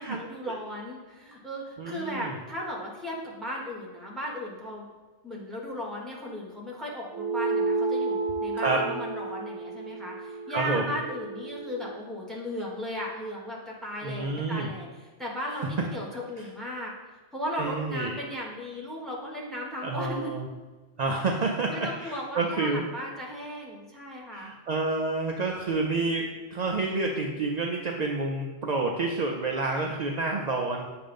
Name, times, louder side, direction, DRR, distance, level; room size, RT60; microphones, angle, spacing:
voice 1, 0.0-4.9 5.2-14.9 15.2-16.9 17.3-20.3 21.7-24.5, equal, ahead, -3 dB, 1.0 m, -36 dB
voice 2, 1.8-2.4 8.5-8.8 10.5-10.9 14.0-14.7 16.4-16.5 17.6-18.1 19.8-20.5 21.0-22.9 24.3-30.9, right 3 dB, 65° right, 1 dB, 0.4 m, -29 dB
sound 1, 7.1-11.9, right 3 dB, 80° right, 1.0 m, -31 dB
7.4 x 2.5 x 5.2 m, 1.3 s
omnidirectional pair, 1.2 m